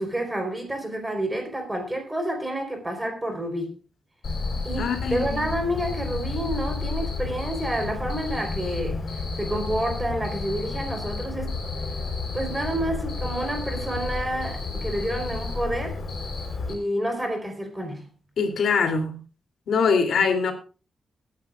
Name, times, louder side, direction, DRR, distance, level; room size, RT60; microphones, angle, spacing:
voice 1, 0.0-3.8 4.6-11.6 12.3-16.0 16.7-18.1, right 1 dB, 10° right, 4 dB, 4.0 m, -29 dB
Cricket, 4.2-16.7, left 3 dB, 50° left, 3.9 m, -31 dB
voice 2, 4.8-5.2 18.4-19.2 19.7-20.5, left 5 dB, 80° left, 5 dB, 2.9 m, -22 dB
21.5 x 10.5 x 2.4 m, 0.35 s
wide cardioid pair, 165°, 0 cm